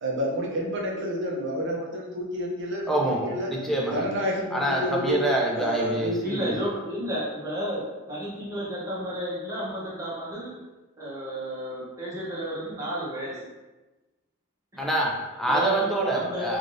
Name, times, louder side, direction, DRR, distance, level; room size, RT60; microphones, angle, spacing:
voice 1, 0.0-3.5 3.9-5.2 5.6-6.2, equal, 55° right, -2 dB, 0.6 m, -29 dB
voice 2, 2.9-4.0 4.5-6.5 14.8-16.6, right 1 dB, ahead, -3 dB, 0.4 m, -26 dB
voice 3, 6.2-10.6 11.0-13.4 14.7-14.9 15.5-16.5, equal, 15° right, -7 dB, 0.9 m, -32 dB
3.2 x 2.5 x 2.6 m, 1.1 s
head